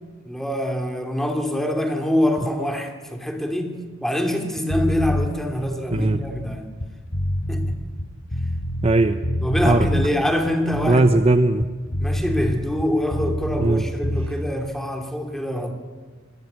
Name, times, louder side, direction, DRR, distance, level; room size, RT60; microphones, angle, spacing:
voice 1, 0.3-6.7 7.5-7.8 9.4-11.1 12.0-15.7, equal, ahead, 4 dB, 2.8 m, -25 dB
sound 1, 4.7-5.3 5.8-9.0 9.2-10.1 10.6-13.8 14.0-14.3, left 1 dB, 70° left, 2.7 m, -26 dB
voice 2, 8.8-9.2 9.6-9.9 10.9-11.7 13.6-13.9, right 2 dB, 30° right, 10 dB, 0.8 m, -18 dB
27.5 x 19.5 x 8.1 m, 1.5 s
head